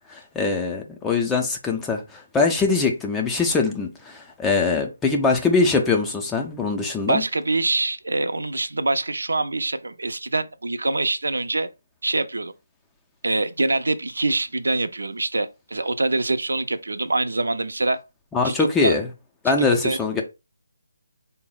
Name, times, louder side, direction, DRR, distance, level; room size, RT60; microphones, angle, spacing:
voice 1, 0.1-7.2 18.3-19.1 19.4-20.2, left 4 dB, 10° left, 0.4 m, -22 dB
voice 2, 7.1-11.7 12.0-12.5 13.2-18.0 18.4-19.0 19.5-20.0, right 2 dB, 85° right, 0.5 m, -24 dB
4.1 x 2.0 x 3.8 m
hypercardioid pair, 165°, 0 cm